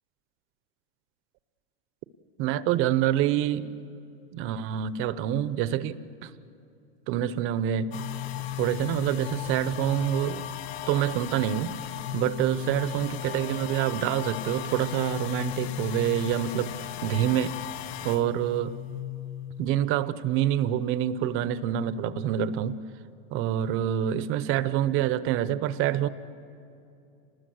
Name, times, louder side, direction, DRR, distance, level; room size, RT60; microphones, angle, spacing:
voice 1, 2.4-3.7 4.3-6.3 7.1-8.0 8.6-10.5 10.9-11.8 12.1-16.7 17.0-17.6 18.0-18.7 19.6-22.8 23.3-26.1, right 11 dB, 40° right, 15 dB, 0.9 m, -26 dB
sound 1, 7.9-20.6 20.9-23.4, left 12 dB, 80° left, 1.1 m, -37 dB
27.0 x 19.5 x 7.9 m, 2.7 s
supercardioid pair, 140°, 32 cm